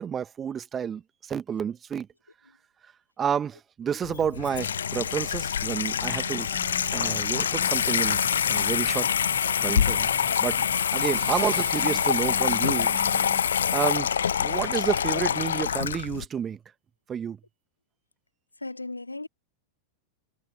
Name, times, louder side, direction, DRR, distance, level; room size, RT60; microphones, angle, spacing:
voice 1, 0.0-2.1 3.2-6.5 6.9-9.1 9.6-10.1 10.4-10.6 10.9-12.9 13.7-16.6 17.1-17.4, right 8 dB, 25° right, 1.4 m, -30 dB
Water tap faucet / Sink (filling or washing), 4.0-16.3, left 8 dB, 65° left, 0.9 m, -25 dB
sound 1, 6.0-13.4, right 1 dB, 5° right, 2.5 m, -46 dB
sound 2, 10.8-13.3, right 10 dB, 65° right, 1.3 m, -45 dB
voice 2, 18.6-19.3, left 2 dB, 85° left, 2.6 m, -36 dB
figure-of-eight pair, 90°, 0 cm